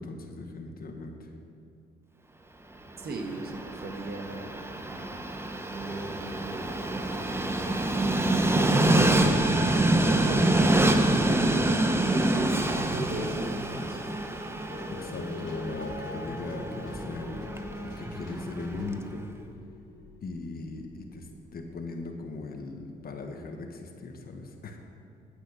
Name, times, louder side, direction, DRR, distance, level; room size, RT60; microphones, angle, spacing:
voice 1, 0.0-1.3 15.0-17.4 17.8-19.3 20.2-24.8, left 3 dB, 50° left, 3 dB, 1.4 m, -39 dB
Train, 3.0-19.1, right 1 dB, 10° right, 0.8 m, -27 dB
voice 2, 3.0-4.5 4.8-5.2 5.7-7.2 8.4-14.1, right 3 dB, 50° right, 2 dB, 1.6 m, -38 dB
sound 1, 14.7-20.8 21.4-21.5, left 3 dB, 80° left, 2.7 m, -42 dB
9.0 x 8.3 x 6.8 m, 2.7 s
cardioid pair, 90°, 20 cm